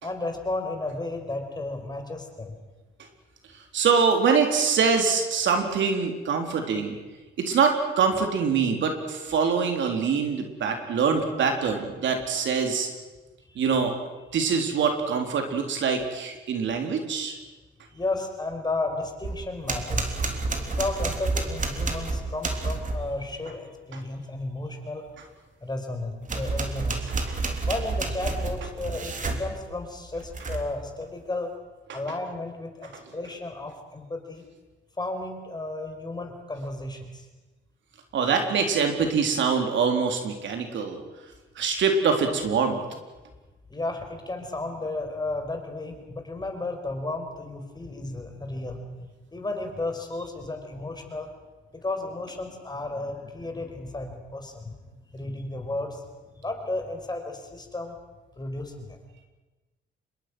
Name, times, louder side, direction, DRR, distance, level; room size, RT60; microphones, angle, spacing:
voice 1, 0.0-2.6 13.5-13.6 17.9-20.2 20.7-25.1 25.6-27.1 27.7-31.5 31.9-34.4 35.0-37.3 43.7-51.3 51.7-54.7 55.1-56.0 56.4-58.0 58.4-59.0, left 2 dB, 20° left, 4 dB, 5.1 m, -33 dB
voice 2, 3.7-7.0 7.4-12.9 13.6-13.9 14.3-17.4 27.3-27.4 38.1-41.0 41.6-42.8, right 5 dB, 70° right, 4 dB, 3.9 m, -24 dB
sound 1, 19.2-23.1 26.2-29.5 30.2-30.8, right 3 dB, 40° right, 3.5 m, -29 dB
26.5 x 22.0 x 6.3 m, 1.2 s
cardioid pair, 90°, 20 cm